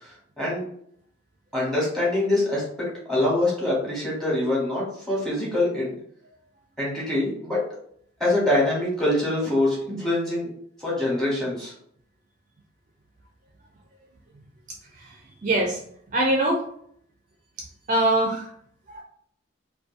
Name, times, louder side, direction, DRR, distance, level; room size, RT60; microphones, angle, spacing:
voice 1, 1.5-5.9 6.8-7.6 8.2-10.5 10.8-11.7, left 1 dB, 5° left, -6 dB, 1.0 m, -24 dB
voice 2, 15.4-15.8 16.1-16.6 17.9-18.5 18.9-19.0, right 1 dB, 40° right, 0 dB, 0.4 m, -22 dB
2.6 x 2.2 x 2.5 m, 0.64 s
head